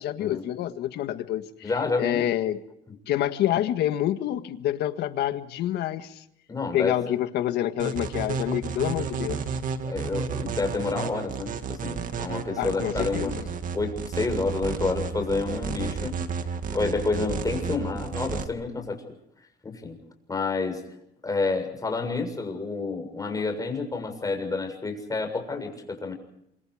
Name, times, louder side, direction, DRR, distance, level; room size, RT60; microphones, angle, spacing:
voice 1, 0.0-1.7 2.0-2.6 3.1-6.2 6.7-9.4 12.6-13.5, left 12 dB, 75° left, 9 dB, 1.7 m, -27 dB
voice 2, 1.6-2.2 6.5-7.2 9.8-13.4 13.7-16.2 16.7-19.0 19.6-20.0 20.3-20.8 21.2-26.1, left 3 dB, 20° left, 4 dB, 7.1 m, -29 dB
sound 1, 7.8-18.5, right 6 dB, 50° right, 2.0 m, -32 dB
27.0 x 25.0 x 5.0 m, 0.74 s
cardioid pair, 110°, 17 cm